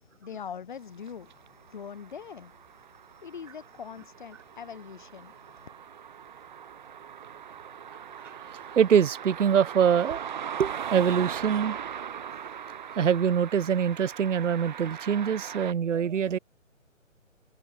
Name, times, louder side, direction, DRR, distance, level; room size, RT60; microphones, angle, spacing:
voice 1, 0.0-5.7, left 7 dB, 35° left, 0.8 m, -43 dB
sound 1, 1.1-15.7, right 8 dB, 35° right, 1.5 m, -40 dB
voice 2, 8.8-10.2 10.6-11.8 13.0-16.4, right 8 dB, 65° right, 0.7 m, -24 dB
figure-of-eight pair, 155°, 40 cm